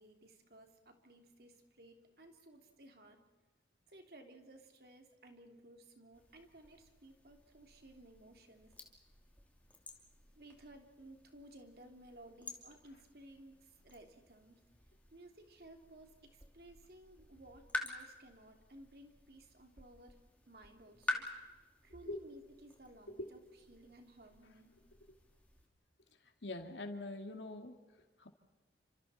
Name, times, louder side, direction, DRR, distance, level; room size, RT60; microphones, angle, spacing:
voice 1, 0.0-3.2 3.9-8.7 10.3-14.6 15.1-21.2 21.8-23.4 23.7-24.8, right 1 dB, 60° right, 4 dB, 3.2 m, -58 dB
sound 1, 6.1-25.7, left 2 dB, 10° left, 2.7 m, -49 dB
voice 2, 26.4-27.8 28.2-28.3, left 2 dB, 90° left, 5 dB, 2.5 m, -43 dB
30.0 x 26.5 x 4.4 m, 1.2 s
head